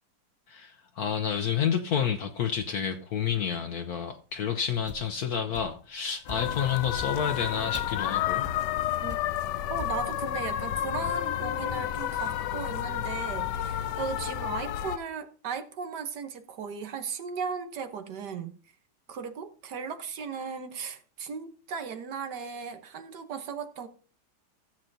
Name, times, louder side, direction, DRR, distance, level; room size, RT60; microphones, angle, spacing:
voice 1, 0.5-8.5, left 8 dB, 65° left, 1.2 m, -29 dB
sound 1, 4.3-5.9 6.3-10.0, left 1 dB, 10° right, 1.1 m, -44 dB
sound 2, 6.2-15.0, left 12 dB, 85° left, 1.2 m, -31 dB
voice 2, 9.7-18.6 19.1-23.9, right 6 dB, 75° right, 1.6 m, -36 dB
16.0 x 7.6 x 2.7 m
omnidirectional pair, 1.8 m